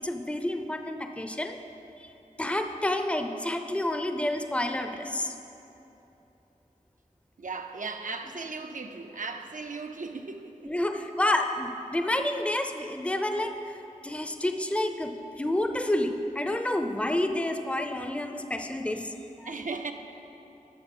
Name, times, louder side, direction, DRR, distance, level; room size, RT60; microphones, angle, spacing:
voice 1, 0.0-1.6 2.0-2.1 2.4-5.4 10.6-13.7 14.0-19.1 19.4-19.5, left 1 dB, 10° left, 6 dB, 0.6 m, -29 dB
voice 2, 7.4-10.8 19.5-19.9, right 4 dB, 65° right, 5 dB, 0.7 m, -37 dB
11.0 x 6.6 x 5.5 m, 3.0 s
wide cardioid pair, 45°, 14 cm